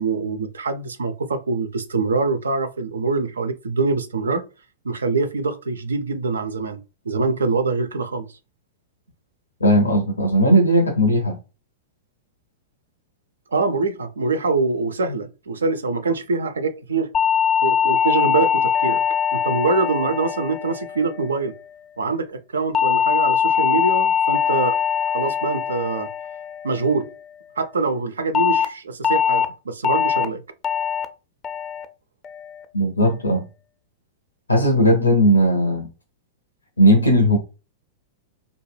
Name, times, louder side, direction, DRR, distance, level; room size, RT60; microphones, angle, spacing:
voice 1, 0.0-4.4 4.8-6.8 7.0-8.3 13.5-17.1 17.6-19.0 19.3-21.5 22.0-24.8 25.1-26.1 26.6-27.1 27.6-30.4, right 4 dB, 75° right, 0.4 m, -24 dB
voice 2, 9.6-11.4 32.7-33.4 34.5-35.9 36.8-37.4, equal, 85° left, 0.5 m, -17 dB
sound 1, 17.1-21.6 22.7-27.2 28.3-28.6 29.0-29.4 29.8-30.2 30.6-31.0 31.4-31.8 32.2-32.6, left 8 dB, 30° left, 0.4 m, -22 dB
2.3 x 2.1 x 3.2 m
figure-of-eight pair, 100°, 0 cm